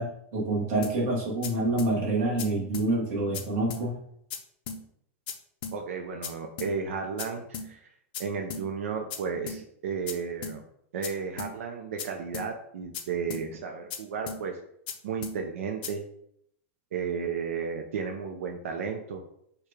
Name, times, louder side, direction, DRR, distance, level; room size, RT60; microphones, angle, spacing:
voice 1, 0.0-4.0, right 2 dB, 30° right, -4 dB, 1.3 m, -27 dB
sound 1, 0.8-1.0 1.4-1.5 1.8-1.9 2.4-2.5 2.7-2.9 3.3-3.4 3.7-3.8 4.3-4.4 4.7-4.8 5.3-5.4 5.6-5.8 6.2-6.3 6.6-6.7 7.2-7.3 7.5-7.7 8.1-8.2 8.5-8.6 9.1-9.2 9.5-9.6 10.1-10.2 10.4-10.6 11.0-11.1 11.4-11.5 12.0-12.1 12.3-12.5 12.9-13.0 13.3-13.4 13.9-14.0 14.3-14.4 14.9-15.0 15.2-15.4 15.8-15.9, left 6 dB, 40° left, 0.5 m, -36 dB
voice 2, 5.7-7.9 8.2-10.6 10.9-14.6 15.0-16.0 16.9-19.2, right 6 dB, 70° right, 3 dB, 0.6 m, -33 dB
4.6 x 2.3 x 4.8 m, 0.71 s
supercardioid pair, 180°, 8 cm